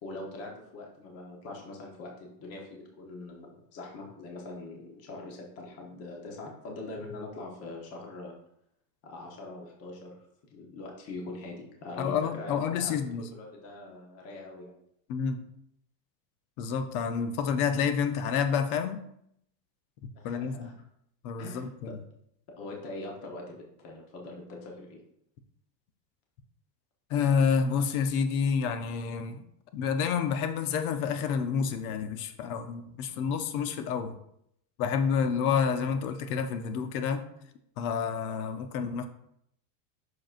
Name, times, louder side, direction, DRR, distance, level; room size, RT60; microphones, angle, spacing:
voice 1, 0.0-8.4 9.0-10.1 10.5-12.9 13.3-14.7 20.1-20.7 21.4-22.0 22.6-25.0, left 2 dB, 30° left, 0 dB, 1.0 m, -42 dB
voice 2, 12.0-13.3 15.1-15.4 16.6-19.0 20.2-20.7 21.2-21.9 27.1-29.4 29.7-34.1 34.8-37.2 37.8-39.1, left 6 dB, 65° left, 8 dB, 0.8 m, -29 dB
7.5 x 6.1 x 2.5 m, 0.74 s
cardioid pair, 175°, 47 cm